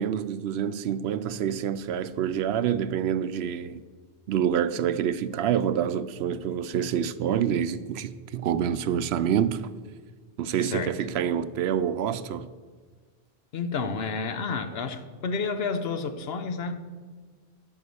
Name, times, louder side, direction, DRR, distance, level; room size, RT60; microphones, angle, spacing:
voice 1, 0.0-3.8 4.3-9.7 10.4-12.5, right 9 dB, 80° right, 0.8 m, -27 dB
voice 2, 10.6-10.9 13.5-16.8, left 4 dB, 70° left, 1.1 m, -30 dB
11.0 x 5.7 x 7.9 m
omnidirectional pair, 1.1 m